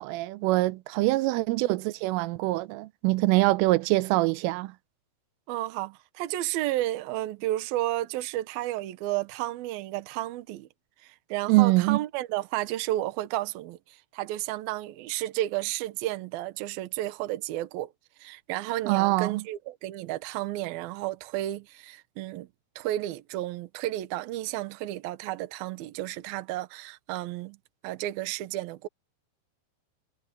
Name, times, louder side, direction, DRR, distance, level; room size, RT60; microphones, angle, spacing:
voice 1, 0.0-4.7 11.5-12.0 18.9-19.4, right 20 dB, 90° right, 3.3 m, -24 dB
voice 2, 5.5-10.7 11.0-17.9 18.2-22.5 22.8-27.6 27.8-28.9, right 15 dB, 70° right, 2.4 m, -32 dB
omnidirectional pair, 5.7 m